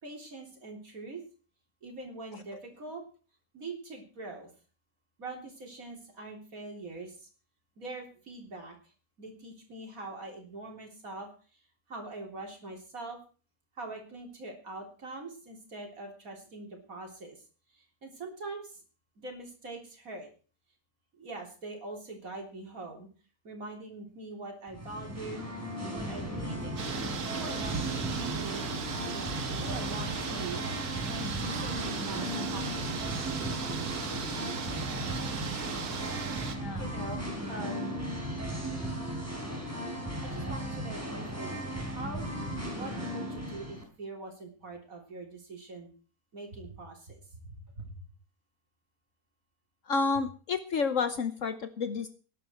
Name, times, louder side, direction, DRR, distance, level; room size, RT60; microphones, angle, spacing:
voice 1, 0.0-1.2 1.8-3.0 3.5-4.5 5.2-7.3 7.8-8.8 9.2-11.3 11.9-13.2 13.8-17.4 17.7-18.8 19.2-20.3 21.2-23.1 23.4-25.5 25.9-26.7 27.3-33.0 36.7-38.4 40.0-42.3 42.7-45.9 46.3-48.1, right 2 dB, 65° right, 1 dB, 3.9 m, -43 dB
Singing, 24.7-43.8, equal, 10° right, 4.4 m, -36 dB
sound 1, 26.8-36.6, right 6 dB, 85° right, 1.8 m, -37 dB
voice 2, 36.5-36.8 49.9-52.1, left 4 dB, 60° left, 10 dB, 1.3 m, -30 dB
19.0 x 11.0 x 4.5 m, 0.39 s
omnidirectional pair, 1.6 m